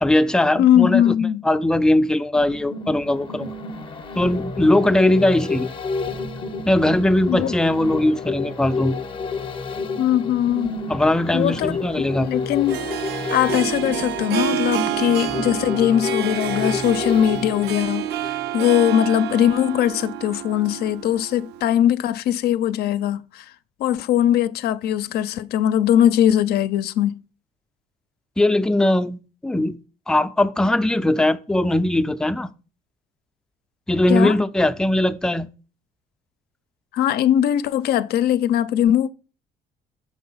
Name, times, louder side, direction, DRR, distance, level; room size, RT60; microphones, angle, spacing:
voice 1, 0.0-1.1 1.4-3.5 4.1-5.7 6.6-9.0 10.9-12.3 28.4-29.8 30.1-32.5 33.9-35.5, left 1 dB, 5° left, 0.3 m, -20 dB
voice 2, 0.5-1.4 7.3-7.5 10.0-10.8 11.3-12.8 13.3-23.5 23.8-27.1 34.1-34.4 36.9-39.1, left 11 dB, 70° left, 0.4 m, -20 dB
sound 1, 2.4-18.6 19.0-19.1, left 4 dB, 30° left, 0.7 m, -30 dB
Harp, 11.3-21.7, right 12 dB, 75° right, 0.4 m, -29 dB
6.3 x 3.9 x 5.5 m
cardioid pair, 110°, 17 cm